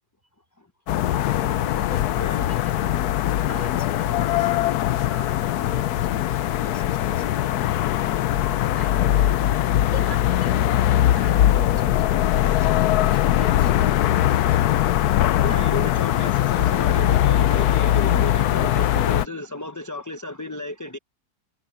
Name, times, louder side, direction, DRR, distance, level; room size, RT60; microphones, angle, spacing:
sound 1, 0.9-19.3, left 12 dB, 80° left, 1.2 m, -21 dB
voice 1, 1.2-8.5 8.7-10.8 11.1-14.7 15.5-15.9, right 1 dB, 30° right, 4.7 m, -44 dB
voice 2, 2.2-2.5 15.4-21.0, left 2 dB, 15° left, 1.0 m, -33 dB
omnidirectional pair, 1.6 m